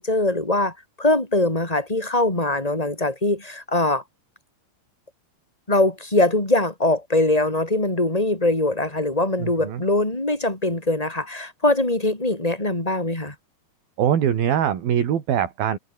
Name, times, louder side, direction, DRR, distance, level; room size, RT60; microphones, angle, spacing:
voice 1, 0.0-4.0 5.7-13.3, left 2 dB, 10° left, 5.2 m, -22 dB
voice 2, 9.4-9.8 14.0-15.8, right 9 dB, 70° right, 4.3 m, -22 dB
omnidirectional pair, 4.5 m